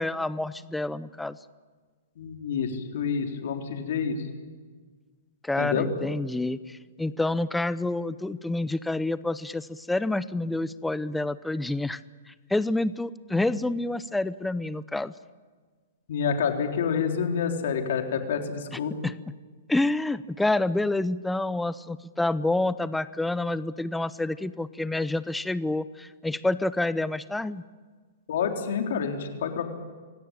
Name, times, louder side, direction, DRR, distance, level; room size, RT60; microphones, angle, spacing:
voice 1, 0.0-1.4 5.4-12.0 12.3-15.1 18.7-19.2 19.7-27.6, left 2 dB, 5° left, 16 dB, 0.7 m, -28 dB
voice 2, 2.2-4.2 5.6-5.9 16.1-18.9 28.3-29.7, left 6 dB, 65° left, 4 dB, 3.8 m, -28 dB
26.0 x 17.0 x 9.0 m, 1.5 s
hypercardioid pair, 125°, 0 cm